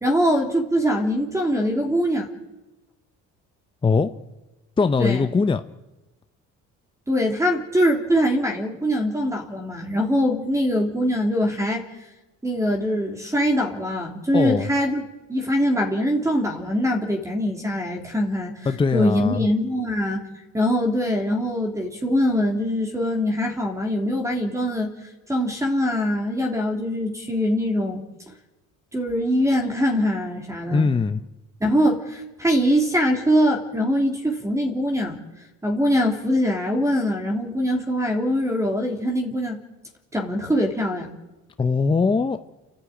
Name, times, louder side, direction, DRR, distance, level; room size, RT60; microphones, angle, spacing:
voice 1, 0.0-2.3 5.0-5.3 7.1-11.8 12.4-15.0 15.3-18.5 18.9-20.2 20.5-24.9 25.3-28.0 28.9-30.9 31.6-35.2 35.6-39.6 40.1-41.1, equal, 10° right, 3 dB, 3.0 m, -23 dB
voice 2, 4.8-5.6 14.3-14.7 18.7-19.5 30.7-31.2 41.6-42.4, left 4 dB, 15° left, 9 dB, 0.7 m, -21 dB
29.0 x 12.0 x 9.1 m, 1.1 s
cardioid pair, 115°, 31 cm